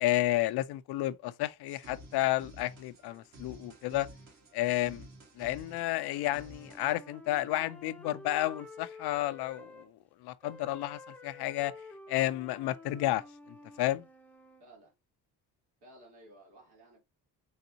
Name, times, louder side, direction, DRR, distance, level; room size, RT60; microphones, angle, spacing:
voice 1, 0.0-4.1 4.5-5.0 5.4-9.9 10.2-11.7 12.1-13.2 13.8-14.0, left 15 dB, 80° left, 0.5 m, -31 dB
sound 1, 1.7-6.9, right 1 dB, 45° right, 1.6 m, -52 dB
sound 2, 5.8-9.9 10.4-14.6, left 2 dB, 5° left, 0.6 m, -50 dB
voice 2, 14.6-14.9 15.8-17.0, right 1 dB, 80° right, 2.7 m, -56 dB
3.9 x 3.5 x 2.8 m
cardioid pair, 135°, 38 cm